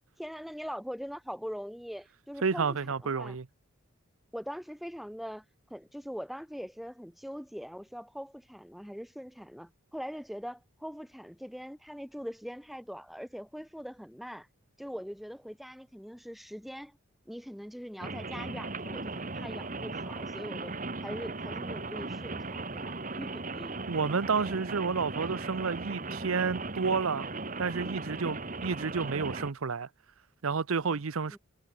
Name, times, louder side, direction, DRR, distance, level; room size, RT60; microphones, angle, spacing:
voice 1, 0.2-3.4 4.3-5.4 5.7-14.5 14.8-17.0 17.3-23.8 30.8-31.0 31.3-31.4, equal, ahead, 5.6 m, -42 dB
voice 2, 2.4-3.5 23.9-27.3 27.6-29.9 30.4-31.4, right 5 dB, 90° right, 0.7 m, -30 dB
Rain, 18.0-29.5, right 3 dB, 40° right, 2.2 m, -37 dB
head